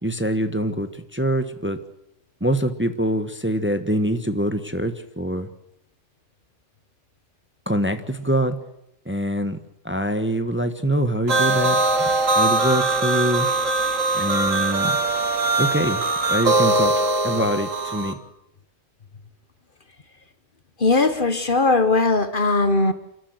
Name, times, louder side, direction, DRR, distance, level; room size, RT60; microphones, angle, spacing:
voice 1, 0.0-1.8 2.4-5.5 7.7-8.6 9.0-9.6 9.8-13.5 14.1-15.0 15.6-16.0 16.3-18.2, equal, 10° right, 9 dB, 1.3 m, -24 dB
sound 1, 11.3-18.1, right 2 dB, 90° right, 2.4 m, -21 dB
voice 2, 20.8-22.9, left 3 dB, 45° left, 11 dB, 1.4 m, -19 dB
29.0 x 12.5 x 8.0 m, 0.83 s
omnidirectional pair, 1.3 m